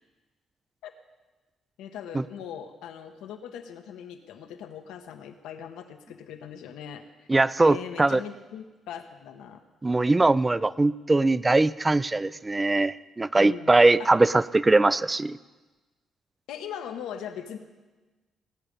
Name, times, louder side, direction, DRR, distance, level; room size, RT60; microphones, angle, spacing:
voice 1, 1.8-7.0 7.6-9.6 13.4-14.1 16.5-17.6, left 8 dB, 90° left, 7 dB, 1.1 m, -40 dB
voice 2, 7.3-8.2 9.8-15.4, right 2 dB, 20° right, 18 dB, 0.4 m, -21 dB
19.5 x 8.7 x 5.4 m, 1.2 s
cardioid pair, 90°, 0 cm